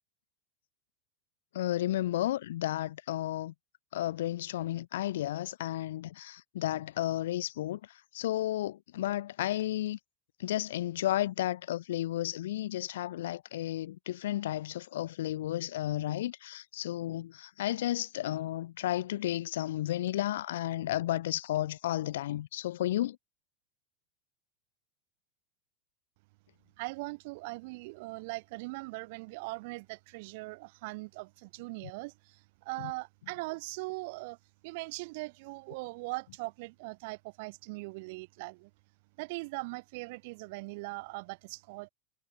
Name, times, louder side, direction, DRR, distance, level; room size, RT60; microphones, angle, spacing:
voice 1, 1.5-3.5 3.9-7.8 8.1-10.0 10.4-23.2, left 13 dB, 85° left, 0.7 m, -32 dB
voice 2, 26.8-34.4 34.6-38.7 39.2-41.9, right 25 dB, 60° right, 1.7 m, -40 dB
supercardioid pair, 145°, 0 cm